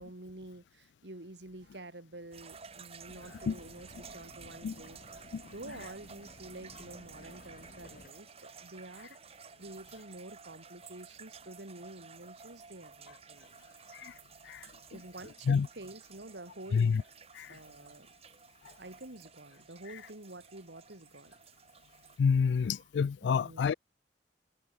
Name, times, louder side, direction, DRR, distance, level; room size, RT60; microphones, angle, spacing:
voice 1, 0.0-13.6 14.9-17.0 17.5-18.1 18.8-21.3 22.5-22.8 23.2-23.8, right 2 dB, 75° right, 2.7 m, -49 dB
sound 1, 2.3-22.2, right 5 dB, 35° right, 1.5 m, -53 dB
sound 2, 3.1-8.1, left 2 dB, 50° left, 1.1 m, -55 dB
voice 2, 22.2-23.7, left 6 dB, 80° left, 0.3 m, -28 dB
head